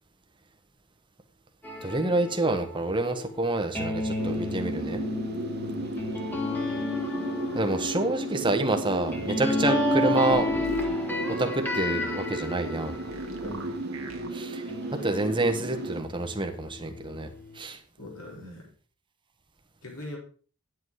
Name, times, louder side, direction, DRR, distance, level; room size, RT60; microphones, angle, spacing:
sound 1, 1.6-14.2 14.7-17.6, left 2 dB, 10° left, 1.8 m, -32 dB
voice 1, 1.8-5.0 7.5-10.5 11.4-13.0 14.3-14.6 15.0-17.3 17.5-17.8, right 2 dB, 25° right, 5 dB, 1.4 m, -28 dB
sound 2, 4.2-16.0, right 2 dB, 50° right, 1.3 m, -35 dB
voice 2, 5.6-6.2 13.4-13.8 18.0-18.7 19.8-20.2, left 1 dB, 80° left, -2 dB, 4.7 m, -42 dB
sound 3, 10.3-11.0 12.9-14.3, right 2 dB, 65° right, 1.8 m, -42 dB
10.5 x 8.0 x 4.8 m, 0.41 s
head